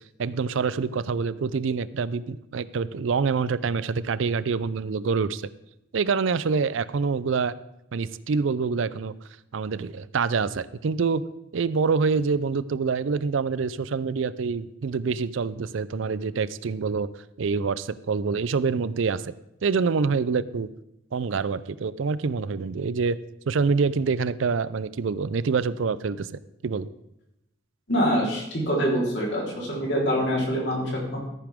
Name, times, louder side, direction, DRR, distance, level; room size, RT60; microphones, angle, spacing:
voice 1, 0.2-5.4 5.9-7.5 7.9-9.1 9.5-11.2 11.5-17.1 17.4-19.3 19.6-20.7 21.1-23.2 23.5-26.3 26.6-26.9, right 5 dB, 70° right, 17 dB, 0.4 m, -26 dB
voice 2, 27.9-31.2, equal, 55° left, -3 dB, 3.9 m, -25 dB
13.5 x 10.0 x 3.6 m, 0.86 s
head